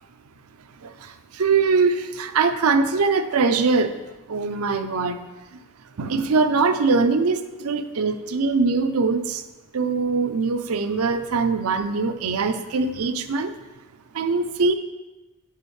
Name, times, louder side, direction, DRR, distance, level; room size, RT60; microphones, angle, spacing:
voice 1, 1.4-3.9 4.3-5.2 6.0-9.4 9.7-13.5 14.2-14.7, right 4 dB, 80° right, 9 dB, 0.5 m, -22 dB
9.3 x 5.5 x 3.2 m, 1.1 s
head